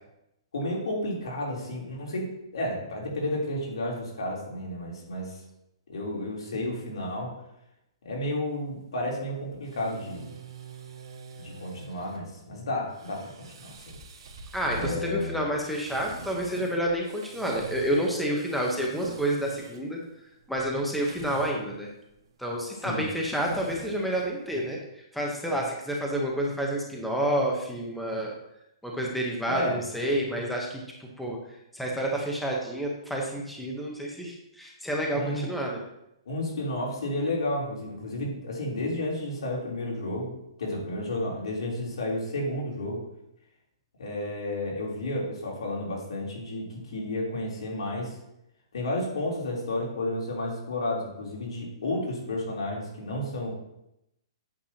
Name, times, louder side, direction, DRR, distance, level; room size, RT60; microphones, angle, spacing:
voice 1, 0.5-5.4 5.9-7.3 8.0-10.3 11.4-14.0 14.8-15.4 22.7-23.0 29.5-29.8 35.1-35.5 36.2-40.3 40.6-43.0 44.0-48.2 48.7-53.5, left 1 dB, 85° left, -3 dB, 3.5 m, -32 dB
sound 1, 8.5-24.7, right 3 dB, 70° right, 1.7 m, -46 dB
voice 2, 14.5-20.0 20.5-21.9 22.4-24.8 25.1-28.3 28.8-31.4 31.7-35.8, right 1 dB, ahead, -2 dB, 1.0 m, -29 dB
8.7 x 8.0 x 2.9 m, 0.83 s
hypercardioid pair, 165°, 3 cm